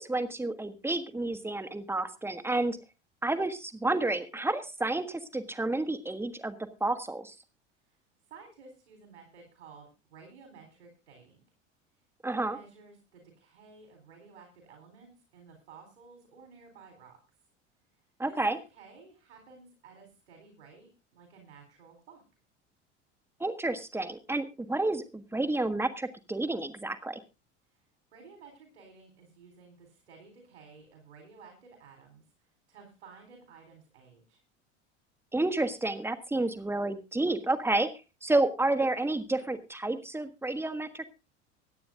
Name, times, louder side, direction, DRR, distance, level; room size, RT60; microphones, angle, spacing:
voice 1, 0.0-2.8 3.2-7.3 12.2-12.6 18.2-18.6 23.4-27.2 35.3-37.9 38.2-41.1, right 2 dB, 5° right, 9 dB, 1.5 m, -30 dB
voice 2, 8.3-11.4 12.2-17.2 18.3-22.2 27.7-27.8 28.1-34.4, right 5 dB, 70° right, 3 dB, 3.9 m, -54 dB
24.5 x 9.4 x 2.6 m, 0.29 s
figure-of-eight pair, 75°, 36 cm